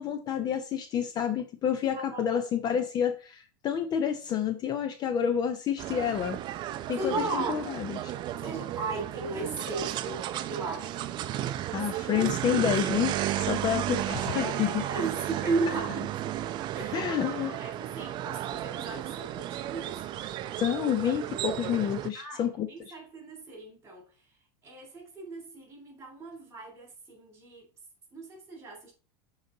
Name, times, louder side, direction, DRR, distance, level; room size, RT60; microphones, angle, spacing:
voice 1, 0.0-6.4 6.9-8.1 11.7-14.8 16.9-17.5 20.6-22.9, left 9 dB, 35° left, 0.5 m, -29 dB
voice 2, 1.9-2.4 7.0-7.6 8.4-11.0 12.0-12.7 14.3-16.1 16.7-17.1 17.4-20.0 22.1-24.1 24.6-27.6 28.1-28.9, right 3 dB, 20° right, 3.0 m, -36 dB
sound 1, 5.8-22.1, right 12 dB, 35° right, 0.5 m, -33 dB
6.9 x 4.0 x 3.8 m
supercardioid pair, 130°, 13 cm